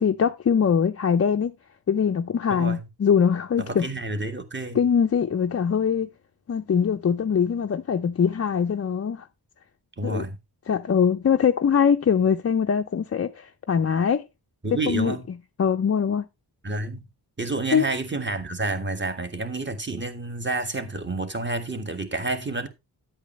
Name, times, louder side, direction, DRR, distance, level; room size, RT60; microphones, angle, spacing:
voice 1, 0.0-1.5 1.9-3.9 4.7-6.1 6.5-9.3 10.0-10.2 10.7-14.2 14.9-15.1 15.6-16.2 17.7-17.9, left 7 dB, 35° left, 0.4 m, -22 dB
voice 2, 2.5-2.8 3.6-4.8 10.0-10.4 14.6-15.3 16.6-17.1 17.4-22.7, right 2 dB, 25° right, 1.6 m, -29 dB
10.0 x 8.4 x 3.1 m
wide cardioid pair, 80°, 42 cm